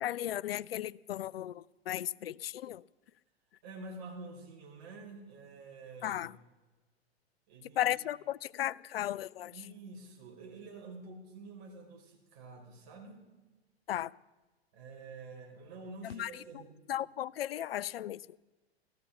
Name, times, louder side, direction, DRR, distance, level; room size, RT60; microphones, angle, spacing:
voice 1, 0.0-2.8 6.0-6.3 7.8-9.5 13.9-14.1 16.1-16.3 16.9-18.2, left 12 dB, 65° left, 0.5 m, -35 dB
voice 2, 3.6-6.2 7.5-8.0 9.5-13.2 14.7-16.8, right 3 dB, 45° right, 4.7 m, -48 dB
15.5 x 14.5 x 5.6 m
figure-of-eight pair, 100°, 32 cm